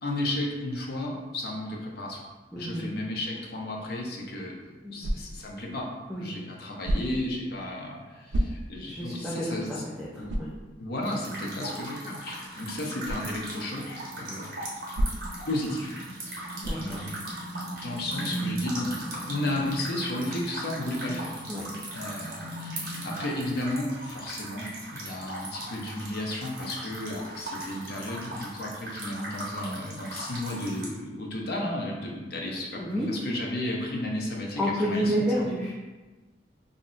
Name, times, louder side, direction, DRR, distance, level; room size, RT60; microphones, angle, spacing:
voice 1, 0.0-2.2 2.5-4.6 4.9-5.9 6.2-9.8 10.2-10.4 10.8-14.5 15.5-16.0 16.2-17.2 17.8-21.3 21.9-35.5, left 1 dB, 60° left, -1 dB, 0.6 m, -33 dB
voice 2, 2.5-2.9 4.8-4.9 6.1-6.2 8.9-10.6 16.6-17.1 21.5-21.6 32.7-33.1 34.6-35.9, equal, ahead, -7 dB, 0.3 m, -30 dB
sound 1, 5.0-5.5 6.8-7.3 8.3-8.9 9.4-9.5 10.3-10.6 13.0-13.3 14.9-15.4 16.6-17.0, equal, 80° right, 0.4 m, -29 dB
sound 2, 11.0-30.9, right 1 dB, 55° right, 0.8 m, -38 dB
2.5 x 2.1 x 3.7 m, 1.2 s
head